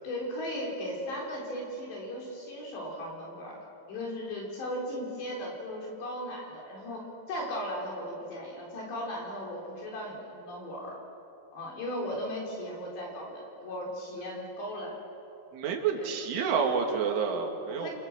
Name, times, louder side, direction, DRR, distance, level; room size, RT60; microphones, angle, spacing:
voice 1, 0.0-3.6 3.9-11.0 11.5-15.0 15.9-16.1 17.7-17.9, equal, 65° left, -2 dB, 6.6 m, -37 dB
voice 2, 15.5-17.9, right 6 dB, 85° right, 2 dB, 4.6 m, -29 dB
28.0 x 23.5 x 7.6 m, 2.9 s
omnidirectional pair, 5.4 m